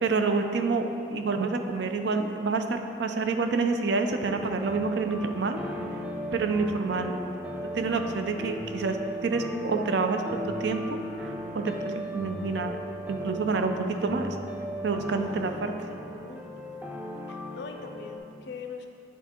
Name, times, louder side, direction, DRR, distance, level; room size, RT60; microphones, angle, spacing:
voice 1, 0.0-5.6 6.3-7.2 7.7-12.8 13.1-14.4 14.8-15.7, right 4 dB, 65° right, 6 dB, 0.4 m, -28 dB
sound 1, 4.2-18.2, equal, 5° right, 0.5 m, -37 dB
voice 2, 15.6-16.8 17.3-18.9, left 4 dB, 60° left, 5 dB, 0.5 m, -43 dB
8.3 x 3.5 x 4.3 m, 2.7 s
head